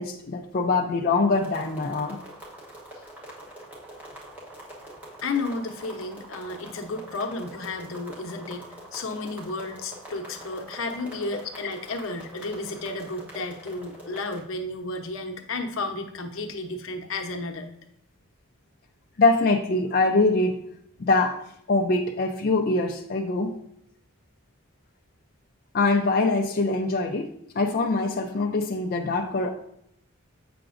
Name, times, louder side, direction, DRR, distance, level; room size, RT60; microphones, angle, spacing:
voice 1, 0.0-2.2 19.2-20.6 21.0-21.4 21.7-23.5 25.7-27.3 27.5-29.5, left 3 dB, 45° left, 1 dB, 0.4 m, -23 dB
sound 1, 1.3-14.4, right 1 dB, 10° right, 1.2 m, -44 dB
voice 2, 5.2-17.7, left 3 dB, 75° left, 4 dB, 0.8 m, -32 dB
7.6 x 5.9 x 2.5 m, 0.74 s
head